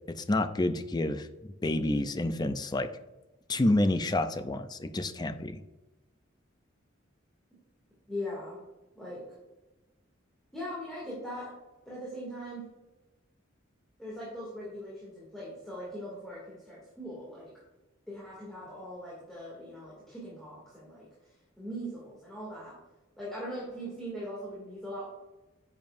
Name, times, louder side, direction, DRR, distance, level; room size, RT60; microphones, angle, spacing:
voice 1, 0.1-1.3 1.6-2.9 3.5-5.6, left 1 dB, 20° left, 9 dB, 0.5 m, -28 dB
voice 2, 8.1-8.6 8.9-9.2 10.5-11.5 11.9-12.7 14.0-17.5 18.1-21.1 21.6-22.8 23.2-25.1, equal, ahead, -7 dB, 2.5 m, -40 dB
10.5 x 7.3 x 2.6 m, 1.1 s
head